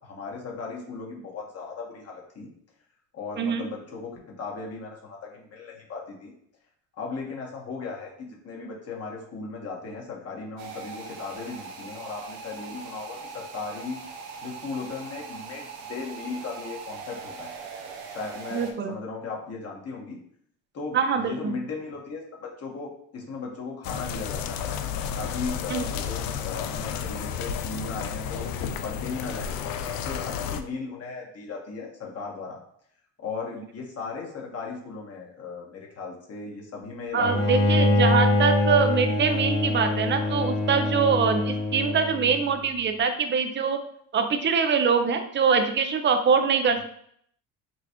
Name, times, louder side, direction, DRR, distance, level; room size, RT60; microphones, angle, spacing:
voice 1, 0.0-2.5 3.1-6.3 7.0-14.0 14.4-17.6 18.1-20.2 20.7-24.7 25.1-32.6 33.2-37.9, left 4 dB, 40° left, -1 dB, 1.4 m, -37 dB
sound 1, 10.6-18.7, right 5 dB, 90° right, 0.9 m, -41 dB
voice 2, 18.5-18.9 20.9-21.6 25.7-25.8 37.1-43.8 44.1-46.8, right 6 dB, 30° right, 7 dB, 0.6 m, -23 dB
sound 2, 23.8-30.6, left 7 dB, 60° left, 0.5 m, -32 dB
Bowed string instrument, 37.2-42.4, left 1 dB, 80° left, 1.8 m, -24 dB
6.0 x 2.4 x 3.0 m, 0.66 s
supercardioid pair, 105°, 39 cm